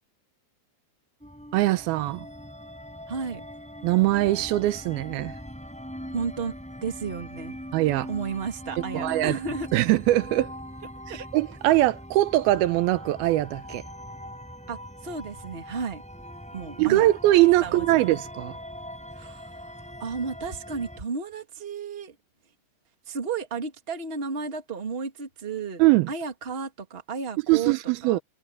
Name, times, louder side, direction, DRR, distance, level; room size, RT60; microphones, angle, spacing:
sound 1, 1.2-21.0, equal, ahead, 5.7 m, -41 dB
voice 1, 1.5-2.3 3.8-5.4 7.7-8.1 8.9-9.4 9.7-10.5 11.1-13.8 16.8-18.6 25.8-26.1 27.5-28.2, right 16 dB, 85° right, 2.5 m, -22 dB
voice 2, 3.1-3.5 6.1-6.5 6.8-7.5 8.1-9.7 11.1-11.3 14.7-16.0 16.5-17.1 17.6-17.9 19.1-22.1 23.0-25.8 26.1-27.7 28.0-28.2, right 5 dB, 20° right, 1.7 m, -33 dB
omnidirectional pair, 4.5 m